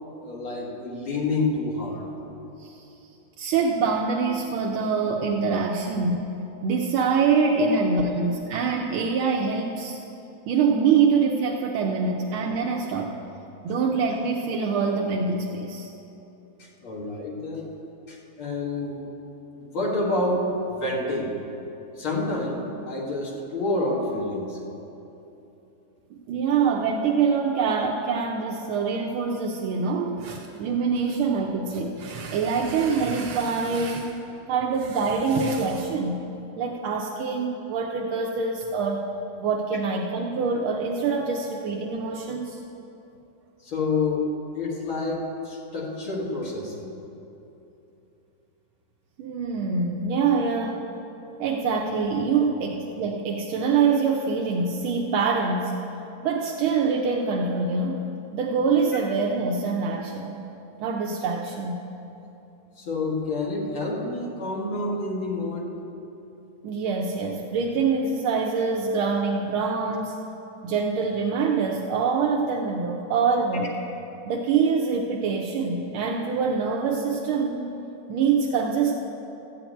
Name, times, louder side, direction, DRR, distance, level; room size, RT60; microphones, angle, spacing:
voice 1, 0.2-2.1 7.6-7.7 16.6-17.7 18.1-19.0 19.6-21.3 22.0-24.6 43.6-44.3 44.5-46.9 62.8-65.7, left 2 dB, 80° left, -3 dB, 2.6 m, -28 dB
voice 2, 3.4-10.0 10.5-13.1 13.6-15.9 26.3-34.1 34.5-36.2 36.6-39.0 39.4-42.6 49.2-50.8 51.4-55.7 56.2-58.0 58.3-60.4 60.8-61.8 66.6-70.2 70.6-73.7 74.3-77.6 78.1-78.9, right 5 dB, 80° right, -1 dB, 1.6 m, -25 dB
13.0 x 5.9 x 9.1 m, 2.9 s
omnidirectional pair, 2.3 m